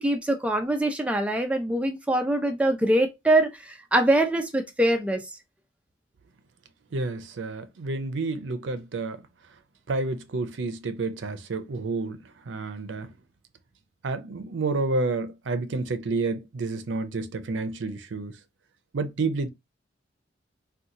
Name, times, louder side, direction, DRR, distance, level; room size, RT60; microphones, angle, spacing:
voice 1, 0.0-5.2, right 1 dB, 5° right, 0.5 m, -23 dB
voice 2, 6.9-9.2 9.9-12.2 12.5-13.1 14.0-18.4 18.9-19.5, right 3 dB, 85° right, 0.5 m, -29 dB
2.8 x 2.3 x 3.7 m
head